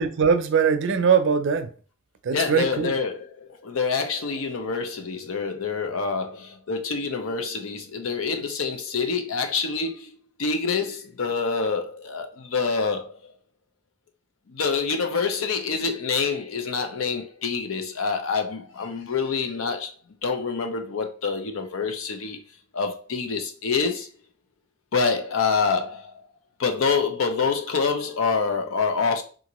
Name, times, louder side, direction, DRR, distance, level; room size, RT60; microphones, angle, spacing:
voice 1, 0.0-1.7 2.2-2.9, right 6 dB, 65° right, 0.5 m, -21 dB
voice 2, 2.3-13.2 14.5-19.9 20.2-22.4 22.7-24.1 24.9-26.2 26.6-29.2, left 5 dB, 80° left, 0.6 m, -26 dB
3.8 x 2.5 x 2.9 m
head